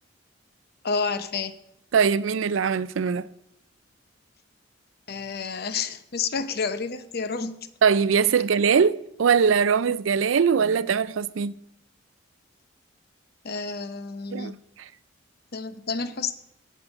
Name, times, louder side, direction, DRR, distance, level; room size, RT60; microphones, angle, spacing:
voice 1, 0.8-1.6 5.1-7.7 13.4-14.6 15.5-16.4, left 5 dB, 55° left, 0.8 m, -30 dB
voice 2, 1.9-3.3 7.8-11.5 14.3-14.5, right 6 dB, 90° right, 0.4 m, -21 dB
10.5 x 8.4 x 7.1 m
head